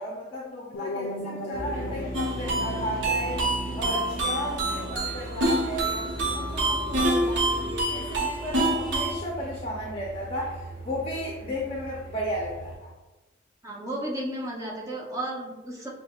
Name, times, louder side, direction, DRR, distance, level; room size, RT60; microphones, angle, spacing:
voice 1, 0.0-3.4 3.8-12.9, equal, 30° left, -4 dB, 0.6 m, -34 dB
sound 1, 0.7-5.7, left 1 dB, 80° left, 0.5 m, -39 dB
sound 2, 1.5-12.8, right 1 dB, 50° right, 1.1 m, -37 dB
sound 3, 2.1-9.1, right 2 dB, 65° right, 0.8 m, -27 dB
voice 2, 13.6-15.9, right 1 dB, 15° right, -3 dB, 0.7 m, -33 dB
6.5 x 2.2 x 2.3 m, 1.1 s
head